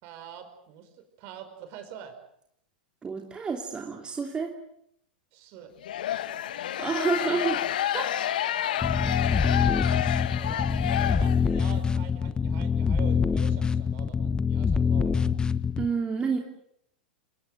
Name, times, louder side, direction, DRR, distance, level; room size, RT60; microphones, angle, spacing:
voice 1, 0.0-2.2 5.3-5.7 6.1-6.4 8.9-9.6 10.4-10.7 11.0-15.3, right 8 dB, 45° right, 8 dB, 5.2 m, -45 dB
voice 2, 3.0-4.5 6.8-7.6 7.9-8.1 15.8-16.4, right 5 dB, 20° right, 3 dB, 3.0 m, -29 dB
sound 1, 5.8-11.7, left 11 dB, 65° left, 1.2 m, -29 dB
sound 2, 8.8-15.9, left 6 dB, 15° left, 1.2 m, -25 dB
30.0 x 19.5 x 7.9 m, 0.73 s
figure-of-eight pair, 90°, 5 cm